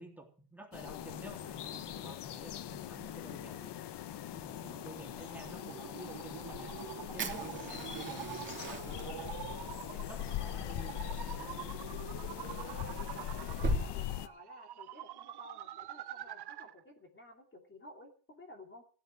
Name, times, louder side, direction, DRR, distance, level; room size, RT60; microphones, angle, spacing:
voice 1, 0.0-3.7 4.3-6.7 7.1-11.7, right 1 dB, 5° right, 0 dB, 3.4 m, -51 dB
sound 1, 0.7-14.3, left 12 dB, 60° left, 1.1 m, -41 dB
sound 2, 4.1-16.8, right 13 dB, 55° right, 0.9 m, -46 dB
Fire, 7.2-13.8, right 2 dB, 25° right, 2.7 m, -42 dB
voice 2, 12.7-18.8, left 1 dB, 25° left, 2 dB, 2.8 m, -54 dB
16.0 x 8.5 x 7.6 m, 0.42 s
cardioid pair, 140°, 46 cm